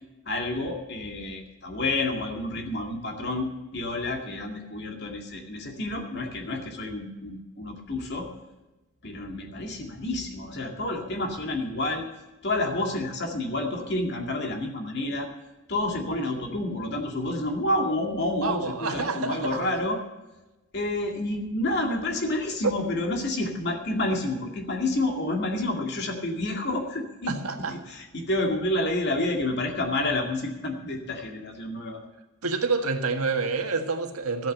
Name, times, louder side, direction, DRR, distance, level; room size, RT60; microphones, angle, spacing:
voice 1, 0.3-8.3 9.0-12.1 12.4-15.3 15.7-20.0 20.7-32.0, left 2 dB, 50° left, 2 dB, 2.2 m, -29 dB
voice 2, 18.4-19.7 27.3-27.7 32.4-34.5, right 4 dB, 85° right, 5 dB, 1.6 m, -28 dB
13.5 x 8.7 x 7.6 m, 1.1 s
head